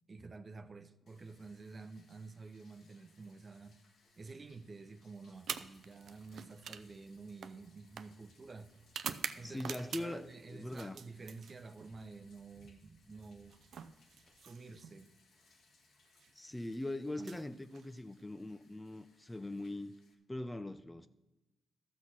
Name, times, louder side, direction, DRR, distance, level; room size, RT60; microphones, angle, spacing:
voice 1, 0.1-3.8 4.2-8.7 9.3-13.6 14.4-15.1 17.2-17.4, right 4 dB, 40° right, 0.7 m, -50 dB
Bathtub (filling or washing), 1.1-20.1, left 3 dB, 75° left, 1.8 m, -70 dB
sound 1, 5.4-10.3 10.7-11.9 13.1-15.0 16.0-16.3 17.1-18.3, right 7 dB, 75° right, 0.5 m, -46 dB
voice 2, 9.4-11.0 16.3-19.9 20.3-21.1, left 1 dB, 15° left, 0.5 m, -41 dB
Thunder, 11.8-15.6 16.9-17.0, left 1 dB, 30° left, 0.9 m, -68 dB
13.5 x 6.2 x 6.0 m
cardioid pair, 80°, 0 cm